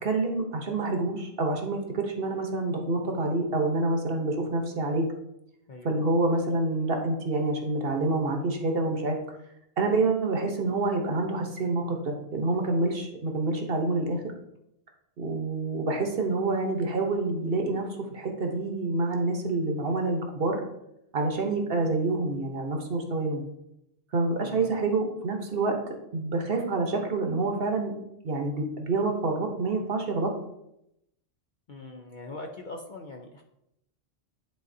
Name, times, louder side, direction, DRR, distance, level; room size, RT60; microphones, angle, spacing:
voice 1, 0.0-5.1 5.8-9.2 9.8-14.2 15.2-20.6 21.1-23.4 24.1-25.8 26.1-27.9 28.2-30.3, right 2 dB, 50° right, 3 dB, 1.1 m, -27 dB
voice 2, 24.4-24.7 31.7-33.4, left 2 dB, 50° left, 2 dB, 0.6 m, -42 dB
10.0 x 4.0 x 2.7 m, 0.81 s
omnidirectional pair, 1.3 m